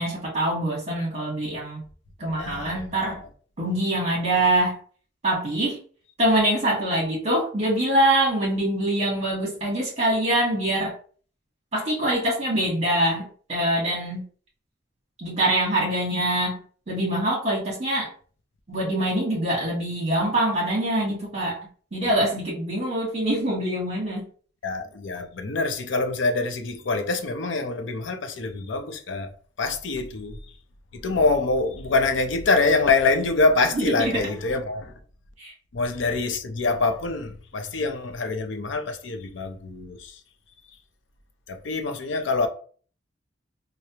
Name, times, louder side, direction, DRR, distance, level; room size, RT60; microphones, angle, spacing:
voice 1, 0.0-1.8 2.2-3.2 3.6-4.8 5.2-5.8 6.2-10.9 11.7-14.2 15.2-16.6 16.9-18.1 18.7-24.3 33.8-34.2 35.4-35.5, right 1 dB, 35° right, 1.0 m, -24 dB
voice 2, 2.3-3.0 24.6-29.3 29.6-30.4 30.9-34.9 35.7-40.2 41.5-42.5, left 3 dB, 80° left, 0.6 m, -25 dB
4.7 x 2.0 x 2.8 m
head